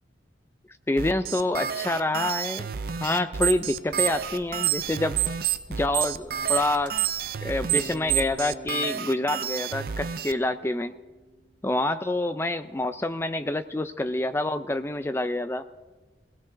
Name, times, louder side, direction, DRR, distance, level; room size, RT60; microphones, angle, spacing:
voice 1, 0.9-2.7 3.0-5.2 5.7-6.9 7.4-10.9 11.6-15.6, left 2 dB, 15° left, 11 dB, 0.4 m, -27 dB
sound 1, 1.0-10.3, right 6 dB, 50° right, 0.4 m, -32 dB
sound 2, 3.4-3.7 3.9-4.9 5.2-8.4, right 23 dB, 85° right, 2.2 m, -25 dB
Bass guitar, 7.7-11.7, right 2 dB, 30° left, 2.2 m, -45 dB
22.5 x 16.5 x 2.6 m, 1.2 s
head